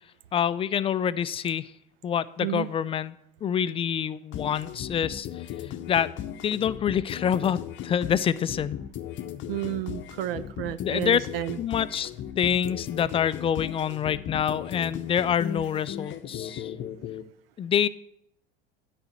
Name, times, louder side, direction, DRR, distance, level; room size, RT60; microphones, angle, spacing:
voice 1, 0.3-1.7 2.0-3.1 3.4-6.2 6.4-8.8 10.8-11.2 11.6-12.1 12.4-16.7 17.6-17.9, left 8 dB, 20° left, 16 dB, 0.3 m, -26 dB
sound 1, 4.3-17.2, left 10 dB, 40° left, 0.7 m, -37 dB
voice 2, 9.5-11.6, right 14 dB, 75° right, 15 dB, 0.5 m, -31 dB
10.5 x 4.2 x 7.6 m, 0.74 s
hypercardioid pair, 75°, 29 cm